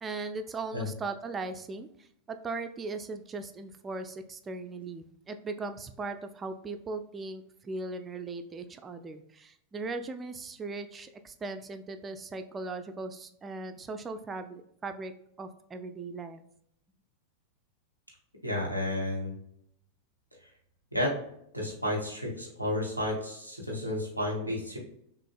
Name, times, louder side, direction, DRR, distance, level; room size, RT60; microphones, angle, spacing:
voice 1, 0.0-15.1 15.4-16.4, right 3 dB, 20° right, 7 dB, 0.4 m, -38 dB
voice 2, 18.4-19.3 20.9-21.1 21.5-24.8, left 1 dB, 90° left, -2 dB, 1.3 m, -31 dB
6.0 x 2.5 x 2.3 m, 0.72 s
figure-of-eight pair, 90°, 0 cm